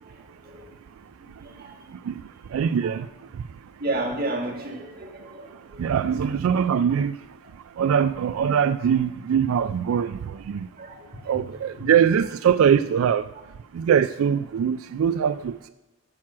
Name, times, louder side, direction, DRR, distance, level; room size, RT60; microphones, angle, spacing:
voice 1, 1.4-1.8 2.8-3.0 3.8-5.5 10.8-11.9, right 2 dB, 45° right, 1.5 m, -32 dB
voice 2, 2.5-3.1 5.8-7.2 7.8-10.7 11.3-13.2 13.7-15.7, right 8 dB, 90° right, 0.3 m, -22 dB
9.1 x 6.1 x 7.2 m
head